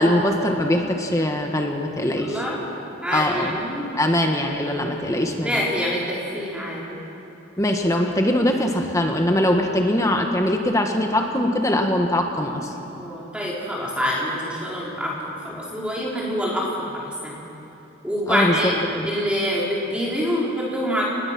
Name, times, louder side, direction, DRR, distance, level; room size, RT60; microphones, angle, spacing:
voice 1, 0.0-2.4 3.1-3.6 3.9-5.6 7.6-12.7 18.3-19.1, left 1 dB, 15° left, 3 dB, 1.5 m, -22 dB
voice 2, 2.1-2.7 3.0-3.9 5.4-7.0 12.9-17.4 18.0-21.0, equal, 5° right, -5 dB, 4.3 m, -26 dB
29.5 x 20.0 x 6.1 m, 3.0 s
head